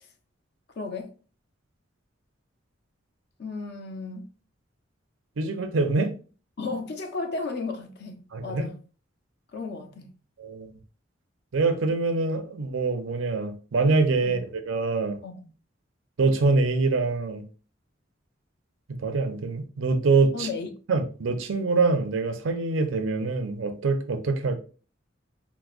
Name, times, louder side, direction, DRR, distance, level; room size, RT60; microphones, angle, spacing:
voice 1, 0.8-1.1 3.4-4.3 6.6-8.8 9.5-10.1 14.2-14.4 15.2-15.5 20.3-20.7, left 3 dB, 60° left, 0.5 m, -34 dB
voice 2, 5.4-6.1 8.3-8.7 10.4-10.7 11.5-15.2 16.2-17.4 18.9-20.5 20.9-24.6, right 3 dB, 90° right, 0.5 m, -25 dB
4.6 x 2.0 x 2.4 m
head